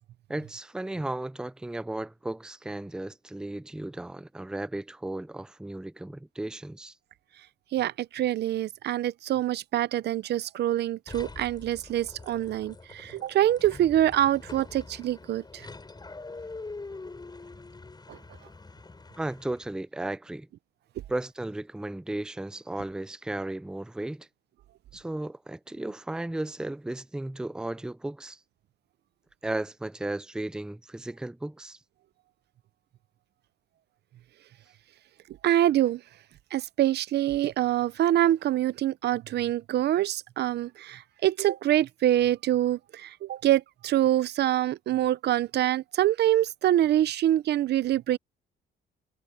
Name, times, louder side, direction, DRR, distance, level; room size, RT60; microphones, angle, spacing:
voice 1, 0.3-6.9 19.2-20.5 21.1-24.3 24.9-28.4 29.4-31.8, right 1 dB, 5° right, 0.5 m, -35 dB
voice 2, 7.7-15.7 18.1-18.2 35.4-36.0 36.5-48.2, right 12 dB, 70° right, 0.7 m, -25 dB
sound 1, 11.1-19.8, left 3 dB, 25° left, 7.2 m, -44 dB
cardioid pair, 85°, 18 cm